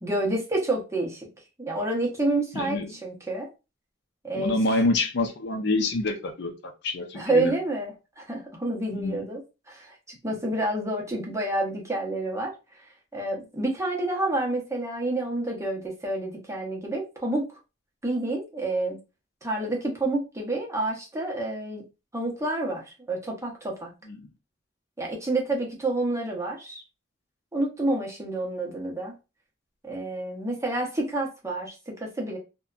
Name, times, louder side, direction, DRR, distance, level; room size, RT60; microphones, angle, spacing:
voice 1, 0.0-1.3 1.6-3.5 4.2-4.6 7.1-9.4 9.7-9.9 10.2-12.5 13.1-17.5 18.0-19.0 19.4-21.8 22.1-23.9 25.0-26.8 27.5-29.1 29.8-32.4, right 2 dB, 15° right, 0.7 m, -29 dB
voice 2, 2.5-2.9 4.3-6.5 6.8-7.5 8.9-9.3 24.1-24.3, left 2 dB, 60° left, 0.5 m, -27 dB
2.7 x 2.2 x 2.3 m
head